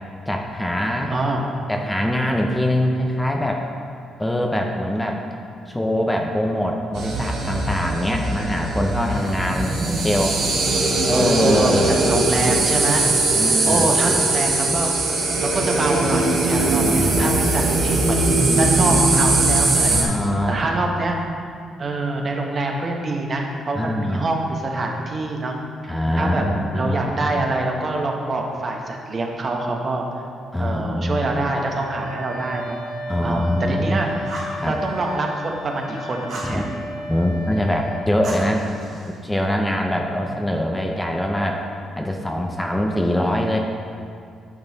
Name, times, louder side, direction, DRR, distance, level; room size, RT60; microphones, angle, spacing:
voice 1, 0.3-1.1 1.7-3.6 4.2-5.2 5.7-10.3 11.1-12.0 13.3-14.2 16.6-17.4 19.9-20.7 23.8-24.3 25.9-27.4 30.5-31.2 33.1-34.1 34.6-34.8 36.4-36.6 37.1-38.6 39.2-41.6 42.0-43.6, left 1 dB, 10° left, 2 dB, 0.7 m, -23 dB
voice 2, 1.1-1.5 9.1-10.1 11.1-13.0 13.7-14.9 15.4-20.1 20.5-21.2 21.8-25.5 25.8-26.4 26.7-30.1 30.6-32.8 33.2-34.3 34.6-36.6, right 2 dB, 40° right, 1 dB, 1.2 m, -25 dB
sound 1, 6.9-20.0, right 2 dB, 80° right, 1.6 m, -20 dB
Wind instrument woodwind instrument, 31.6-38.1, equal, 90° left, 1.2 m, -33 dB
Fire, 34.2-34.6 36.3-36.6 38.2-39.2, right 1 dB, 65° right, 2.0 m, -34 dB
9.0 x 6.3 x 4.0 m, 2.3 s
cardioid pair, 90°, 0 cm